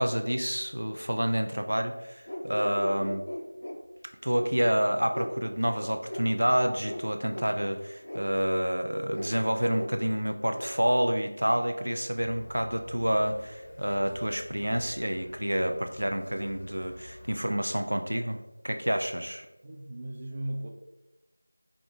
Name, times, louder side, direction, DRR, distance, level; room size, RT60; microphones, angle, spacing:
voice 1, 0.0-3.2 4.2-18.4 18.6-19.5, equal, 85° right, 6 dB, 0.5 m, -28 dB
sound 1, 2.3-3.8 4.3-4.5 5.1-5.3 6.1-6.2 6.8-7.0 7.3-7.5 8.0-8.2 9.1-9.3 9.7-9.9 10.5-10.7, equal, 75° left, 0.6 m, -37 dB
sound 2, 12.1-17.4, left 1 dB, 35° left, 0.7 m, -49 dB
voice 2, 19.6-20.7, right 1 dB, 25° right, 1 dB, 0.4 m, -36 dB
4.8 x 2.6 x 3.6 m, 0.99 s
figure-of-eight pair, 175°, 0 cm